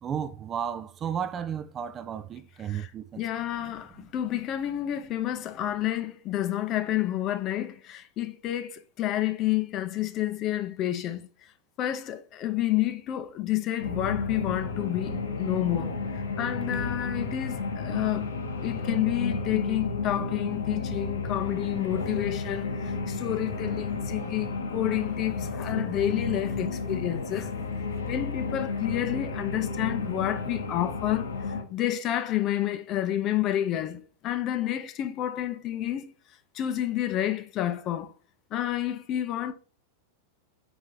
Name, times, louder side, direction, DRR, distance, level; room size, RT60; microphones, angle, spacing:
voice 1, 0.0-3.2 4.0-4.1, right 8 dB, 25° right, 0.5 m, -33 dB
voice 2, 3.2-11.3 11.8-15.9 16.4-18.3 18.6-27.5 28.1-31.3 31.7-36.1 36.5-38.1 38.5-39.5, left 13 dB, 35° left, 0.6 m, -29 dB
sound 1, 13.8-31.6, left 4 dB, 70° left, 0.9 m, -32 dB
4.8 x 4.0 x 5.3 m
figure-of-eight pair, 90°, 0 cm